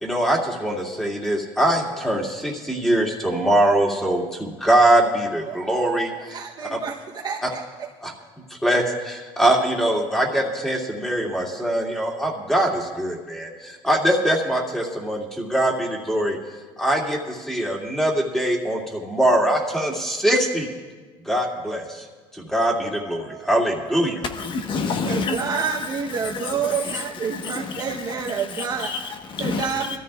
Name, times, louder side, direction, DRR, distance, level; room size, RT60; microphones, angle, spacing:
voice 1, 0.0-6.4 7.4-7.5 8.0-8.1 8.6-16.4 16.8-20.7 21.3-22.0 22.3-24.2, right 1 dB, 5° left, -1 dB, 2.3 m, -22 dB
voice 2, 5.4-7.6 22.8-23.8 25.0-28.9 29.4-30.0, right 7 dB, 35° right, -2 dB, 0.9 m, -29 dB
voice 3, 24.3-30.0, left 4 dB, 45° left, 6 dB, 1.2 m, -30 dB
23.0 x 13.5 x 2.4 m, 1.4 s
cardioid pair, 115°, 11 cm